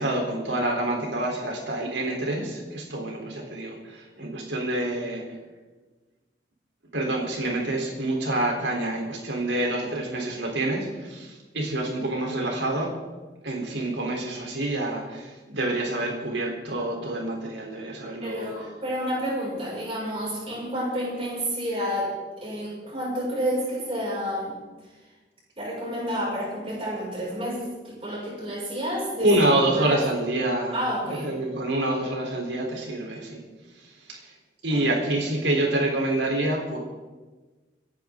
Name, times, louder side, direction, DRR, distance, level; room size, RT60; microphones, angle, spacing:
voice 1, 0.0-5.2 6.9-12.9 13.4-18.5 29.2-30.8 31.2-33.4 34.1-34.2 34.6-36.8, right 1 dB, 85° right, 0 dB, 4.0 m, -27 dB
voice 2, 18.0-24.6 25.6-29.3 29.7-30.0 30.7-31.3 34.7-34.9, equal, 30° right, -6 dB, 6.5 m, -30 dB
27.0 x 10.5 x 3.9 m, 1.3 s
head